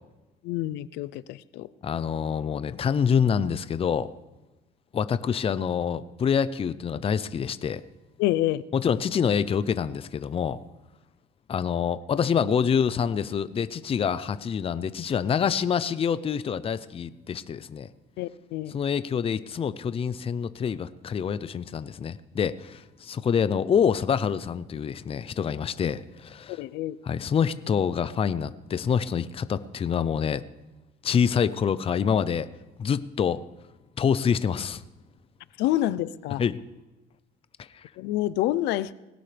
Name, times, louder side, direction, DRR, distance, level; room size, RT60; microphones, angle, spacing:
voice 1, 0.4-1.7 8.2-8.6 18.2-18.8 26.6-27.0 35.6-36.4 38.0-38.9, left 14 dB, 90° left, 17 dB, 0.6 m, -27 dB
voice 2, 1.8-4.1 4.9-7.8 8.7-10.6 11.5-17.9 18.7-26.6 27.0-30.4 31.0-32.5 32.8-33.4 34.0-34.8 36.4-36.6 37.7-37.8, left 7 dB, 35° left, 14 dB, 0.6 m, -26 dB
20.0 x 17.5 x 3.4 m, 1.1 s
cardioid pair, 110°, 17 cm